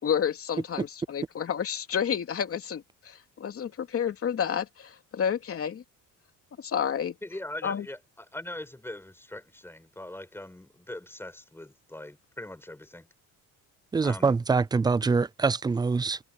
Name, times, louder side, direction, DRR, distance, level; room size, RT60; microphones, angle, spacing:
voice 1, 0.0-5.8 6.6-7.1 7.6-7.8, left 8 dB, 45° left, 2.8 m, -30 dB
voice 2, 7.2-13.1 14.0-14.4, left 1 dB, 5° left, 5.7 m, -41 dB
voice 3, 13.9-16.2, right 4 dB, 15° right, 0.4 m, -24 dB
cardioid pair, 135°, 33 cm